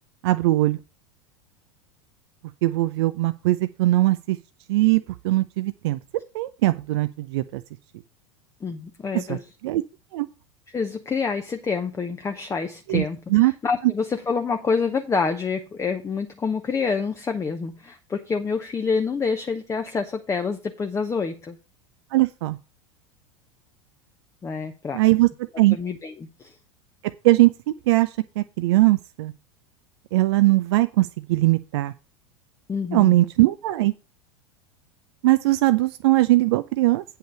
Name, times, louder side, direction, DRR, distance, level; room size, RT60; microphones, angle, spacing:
voice 1, 0.2-0.8 2.6-4.4 4.7-6.0 6.3-7.6 9.1-9.8 10.1-10.3 12.9-13.0 13.3-13.5 22.1-22.6 24.9-25.3 25.6-25.8 27.0-28.1 28.4-29.3 30.1-31.9 32.9-33.9 35.2-37.0, right 18 dB, 60° right, 12 dB, 0.5 m, -20 dB
voice 2, 8.6-9.4 10.7-21.6 24.4-25.0 25.7-26.5 32.7-33.2, left 5 dB, 20° left, 6 dB, 0.9 m, -27 dB
8.8 x 5.7 x 5.4 m, 0.30 s
figure-of-eight pair, 80°, 16 cm